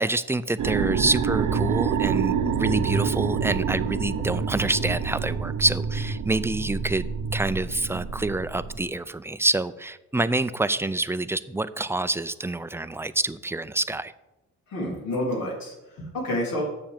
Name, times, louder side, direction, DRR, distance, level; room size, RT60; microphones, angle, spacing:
voice 1, 0.0-7.1 7.3-14.1, right 2 dB, 10° right, 14 dB, 0.4 m, -27 dB
sound 1, 0.6-8.8, right 6 dB, 75° right, 0.9 m, -27 dB
voice 2, 14.7-16.6, left 1 dB, 90° left, -2 dB, 3.4 m, -29 dB
7.3 x 6.3 x 7.3 m, 1.0 s
cardioid pair, 90°, 33 cm